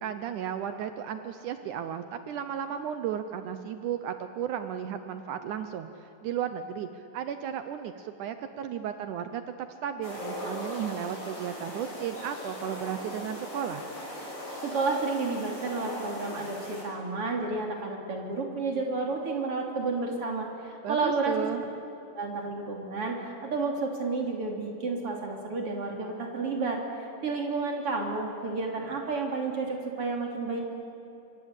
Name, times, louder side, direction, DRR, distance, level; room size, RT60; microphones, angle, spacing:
voice 1, 0.0-9.4 9.8-13.9 20.8-21.6, right 9 dB, 70° right, 9 dB, 2.2 m, -34 dB
sound 1, 10.0-16.8, left 1 dB, 30° left, 6.4 m, -39 dB
voice 2, 14.6-21.4 22.2-30.6, right 3 dB, 40° right, 1 dB, 3.8 m, -31 dB
26.5 x 23.5 x 8.4 m, 2.8 s
omnidirectional pair, 4.0 m